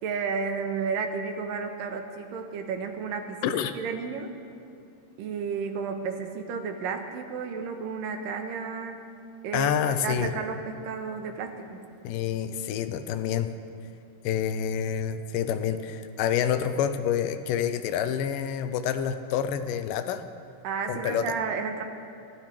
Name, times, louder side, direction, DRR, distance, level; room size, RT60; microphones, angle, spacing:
voice 1, 0.0-4.3 5.2-9.0 9.4-11.9 20.6-21.8, right 5 dB, 85° right, 5 dB, 2.7 m, -32 dB
voice 2, 9.5-10.3 12.0-13.5 14.2-20.2 20.9-21.3, left 8 dB, 85° left, 10 dB, 2.3 m, -28 dB
22.5 x 15.0 x 3.3 m, 2.5 s
omnidirectional pair, 3.9 m